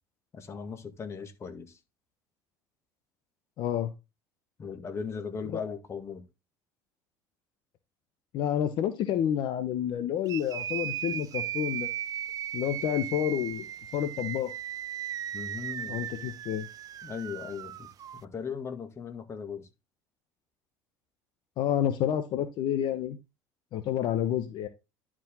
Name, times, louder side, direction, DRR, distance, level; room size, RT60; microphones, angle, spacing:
voice 1, 0.3-1.8 4.6-6.2 15.3-16.0 17.0-17.9 18.2-19.7, left 6 dB, 30° left, 1.9 m, -38 dB
voice 2, 3.6-3.9 8.3-11.9 12.5-13.7 13.9-14.5 15.9-16.7 21.6-23.2 23.7-24.7, left 10 dB, 60° left, 1.0 m, -29 dB
sound 1, 10.3-18.2, right 11 dB, 45° right, 0.5 m, -37 dB
11.0 x 5.1 x 3.8 m
cardioid pair, 110°, 9 cm